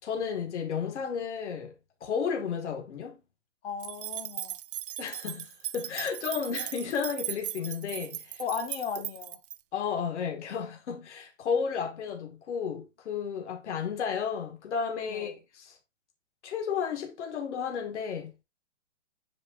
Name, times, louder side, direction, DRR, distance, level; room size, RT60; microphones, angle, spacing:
voice 1, 0.0-1.7 2.0-3.2 5.0-8.4 9.7-15.7 16.4-18.4, left 6 dB, 70° left, 2.1 m, -33 dB
voice 2, 3.6-4.5 8.4-9.4 15.1-15.3, left 6 dB, 55° left, 1.5 m, -36 dB
sound 1, 3.8-9.6, right 12 dB, 50° right, 0.4 m, -38 dB
7.7 x 5.2 x 2.6 m
hypercardioid pair, 150°, 37 cm